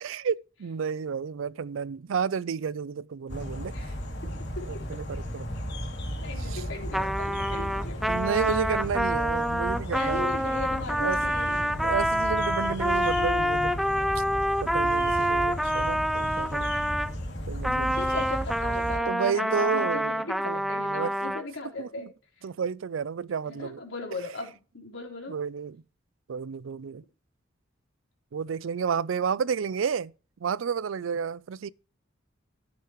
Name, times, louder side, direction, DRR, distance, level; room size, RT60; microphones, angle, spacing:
voice 1, 0.0-3.7 4.2-5.5 6.4-6.6 8.1-10.3 11.0-11.2 11.5-13.8 14.2-14.3 14.6-16.7 17.5-18.0 19.1-21.3 21.8-22.1 22.4-23.8 25.3-25.8 26.3-27.0 28.3-30.1 30.4-31.7, right 6 dB, 75° right, 0.4 m, -31 dB
sound 1, 3.3-19.0, equal, 60° left, 2.7 m, -35 dB
voice 2, 6.2-8.2 9.9-11.8 17.7-22.1 23.5-25.3, left 2 dB, 80° left, 4.1 m, -38 dB
Trumpet, 6.9-17.1 17.6-21.4, equal, ahead, 0.4 m, -27 dB
15.0 x 8.7 x 3.0 m
head